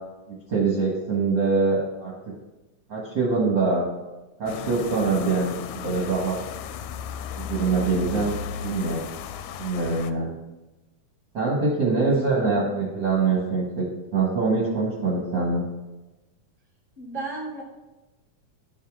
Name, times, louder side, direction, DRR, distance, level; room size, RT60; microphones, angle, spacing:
voice 1, 0.5-2.1 2.9-3.8 4.4-6.3 7.4-8.3 8.6-9.0 9.6-10.3 11.3-13.8 14.1-15.6, right 4 dB, 45° right, -5 dB, 1.7 m, -24 dB
sound 1, 4.5-10.1, left 7 dB, 80° left, 1.8 m, -35 dB
voice 2, 12.4-12.9 17.0-17.6, right 2 dB, 5° right, -3 dB, 1.9 m, -35 dB
12.0 x 5.6 x 3.6 m, 1.1 s
omnidirectional pair, 3.6 m